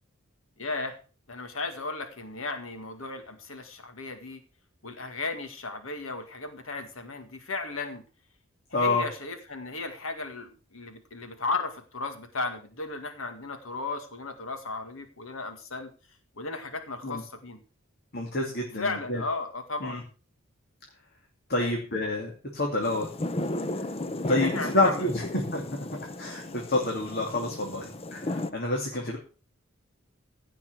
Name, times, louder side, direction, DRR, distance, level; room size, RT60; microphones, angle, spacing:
voice 1, 0.6-1.0 1.3-4.4 4.8-8.0 8.7-15.9 16.4-17.6 18.8-20.0 21.6-21.7 24.3-25.1 28.4-28.5, left 3 dB, 85° left, 7 dB, 2.0 m, -35 dB
voice 2, 8.7-9.0 17.0-17.2 18.1-19.2 19.8-20.0 21.5-23.1 24.3-25.2 25.5-25.6 26.2-29.2, left 2 dB, 50° left, 0 dB, 2.7 m, -28 dB
sound 1, 22.8-28.5, left 1 dB, 30° left, 0.7 m, -34 dB
16.5 x 6.1 x 6.2 m, 0.37 s
head